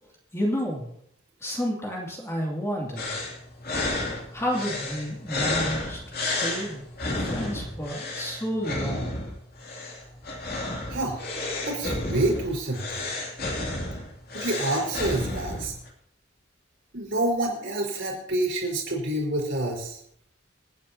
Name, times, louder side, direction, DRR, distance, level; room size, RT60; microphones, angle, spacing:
voice 1, 0.3-0.9 1.4-3.1 4.3-6.8 7.2-9.1, equal, 15° left, -3 dB, 2.5 m, -30 dB
sound 1, 3.0-15.9, left 2 dB, 50° left, 2.7 m, -31 dB
voice 2, 10.9-11.2 11.7-13.1 14.3-15.7 16.9-20.0, right 1 dB, 60° right, -1 dB, 4.4 m, -27 dB
27.0 x 9.4 x 2.8 m, 0.70 s
head